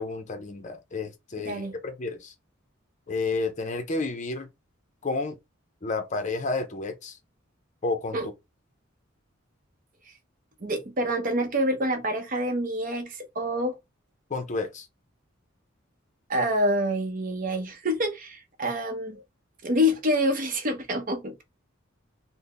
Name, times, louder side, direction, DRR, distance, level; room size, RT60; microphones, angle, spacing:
voice 1, 0.0-2.3 3.1-4.5 5.0-5.4 5.8-7.2 7.8-8.2 14.3-14.9, left 3 dB, 35° left, 0.5 m, -31 dB
voice 2, 1.4-1.8 8.1-8.3 10.6-13.8 16.3-19.2 19.6-21.4, equal, 45° right, 0.7 m, -27 dB
3.3 x 2.0 x 3.9 m
head